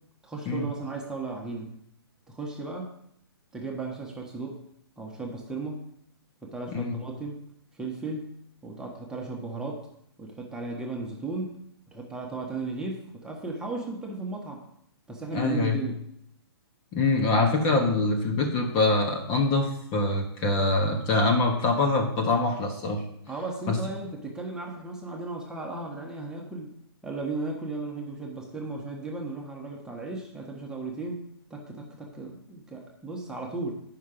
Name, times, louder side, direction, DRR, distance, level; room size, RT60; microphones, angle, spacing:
voice 1, 0.2-1.7 2.3-2.9 3.5-4.6 5.0-5.9 6.4-7.4 7.8-8.3 8.6-9.9 10.2-11.6 11.9-14.6 15.1-16.0 23.3-26.7 27.0-31.2 31.5-33.7, right 3 dB, 5° right, -2 dB, 1.4 m, -35 dB
voice 2, 15.3-15.8 16.9-23.0 23.7-23.8, left 2 dB, 30° left, 2 dB, 1.3 m, -24 dB
9.1 x 5.8 x 5.1 m, 0.71 s
hypercardioid pair, 130°, 14 cm